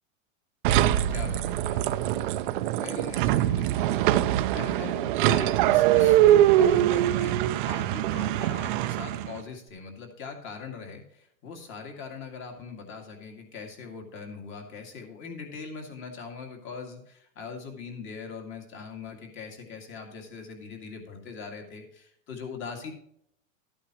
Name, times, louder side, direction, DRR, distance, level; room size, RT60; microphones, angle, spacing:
sound 1, 0.6-9.4, right 13 dB, 40° right, 0.5 m, -23 dB
voice 1, 1.1-2.0 2.7-3.9 4.5-7.4 7.7-22.9, left 5 dB, 30° left, 3 dB, 2.2 m, -41 dB
13.0 x 8.7 x 3.0 m, 0.70 s
supercardioid pair, 160°, 40 cm